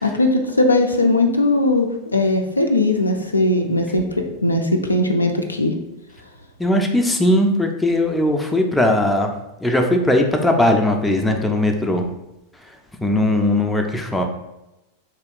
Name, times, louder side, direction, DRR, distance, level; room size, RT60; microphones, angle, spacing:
voice 1, 0.0-5.7, left 2 dB, 80° left, 4 dB, 0.3 m, -19 dB
voice 2, 6.6-9.3 9.6-12.1 13.0-14.2, left 1 dB, 5° left, 3 dB, 0.4 m, -18 dB
3.4 x 2.8 x 2.4 m, 0.94 s
figure-of-eight pair, 90°, 0 cm